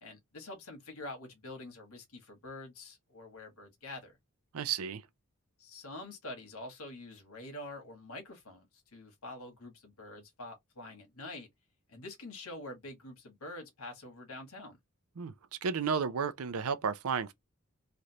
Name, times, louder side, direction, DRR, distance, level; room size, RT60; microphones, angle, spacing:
voice 1, 0.0-4.2 5.6-11.5 11.9-14.8, left 2 dB, 90° left, 1.3 m, -46 dB
voice 2, 4.5-5.0 15.2-15.3 15.6-17.3, right 6 dB, 85° right, 0.5 m, -32 dB
3.2 x 2.5 x 2.7 m
head